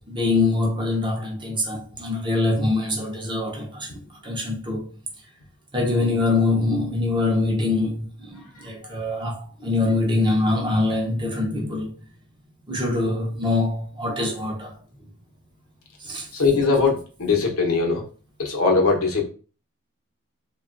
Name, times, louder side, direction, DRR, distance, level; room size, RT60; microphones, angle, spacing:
voice 1, 0.1-3.9 4.2-4.9 5.7-11.9 12.7-14.8 16.0-16.3, left 2 dB, 20° right, 0.6 m, -24 dB
voice 2, 16.3-18.0 18.4-19.2, left 4 dB, 75° left, 0.8 m, -20 dB
3.0 x 2.3 x 2.5 m
head